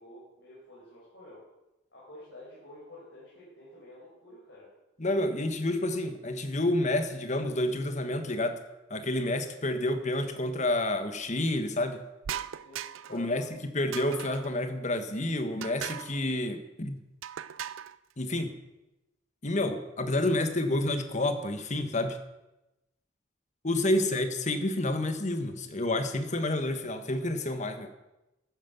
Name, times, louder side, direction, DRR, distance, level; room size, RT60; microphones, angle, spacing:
voice 1, 0.0-1.5 1.9-4.7 12.6-13.5 19.6-19.7 23.9-24.1, left 2 dB, 60° left, -7 dB, 5.5 m, -49 dB
voice 2, 5.0-8.6 8.9-12.0 13.1-17.0 18.2-18.5 19.4-22.2 23.6-27.9, left 1 dB, 35° left, 8 dB, 1.4 m, -29 dB
sound 1, 12.2-13.2 13.9-14.5 15.6-16.2 17.2-18.0, right 9 dB, 85° right, 0.5 m, -38 dB
13.5 x 9.5 x 7.1 m, 0.97 s
head